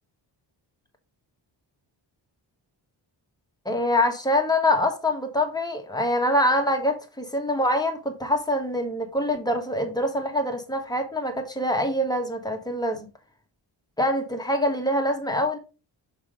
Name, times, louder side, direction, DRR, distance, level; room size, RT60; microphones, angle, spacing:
voice 1, 3.6-13.1 14.0-15.6, left 1 dB, 10° left, 1.3 m, -25 dB
6.4 x 3.7 x 5.0 m
wide cardioid pair, 140°, 46 cm